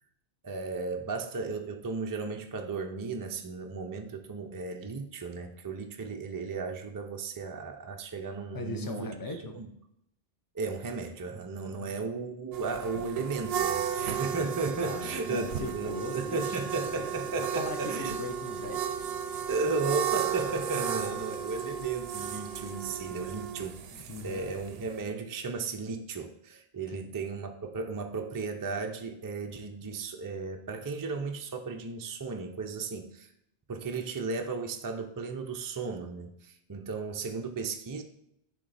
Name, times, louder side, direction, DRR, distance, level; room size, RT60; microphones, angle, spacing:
voice 1, 0.4-9.1 9.5-9.7 10.5-18.2 19.5-33.3 33.7-38.0, right 4 dB, 30° right, 4 dB, 0.4 m, -35 dB
voice 2, 8.5-9.6 11.7-12.0 14.8-16.6 16.9-19.0 19.3-19.5 21.1-21.2 23.1-23.3 23.9-24.4 26.9-27.1, left 2 dB, 25° left, 6 dB, 0.6 m, -40 dB
sound 1, 12.5-25.0, right 8 dB, 70° right, 0.8 m, -34 dB
9.8 x 3.4 x 4.1 m, 0.77 s
omnidirectional pair, 1.1 m